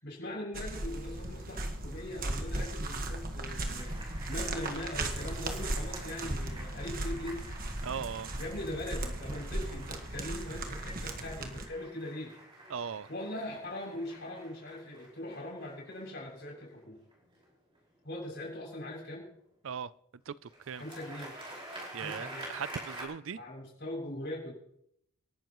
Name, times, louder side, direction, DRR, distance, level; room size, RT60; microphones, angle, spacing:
voice 1, 0.0-3.9 4.3-7.5 8.4-12.3 13.1-17.0 18.0-19.3 20.8-21.3 21.9-22.5 23.3-24.5, left 1 dB, 50° left, -2 dB, 7.1 m, -41 dB
sound 1, 0.5-11.6, right 1 dB, 40° right, 1.5 m, -37 dB
sound 2, 3.7-17.8 20.5-23.0, right 1 dB, 25° right, 5.2 m, -49 dB
voice 2, 7.8-8.3 12.7-13.1 19.6-19.9 20.3-20.4 20.7-20.8 21.9-23.4, right 7 dB, 65° right, 18 dB, 0.4 m, -38 dB
27.5 x 12.0 x 3.1 m, 0.73 s
head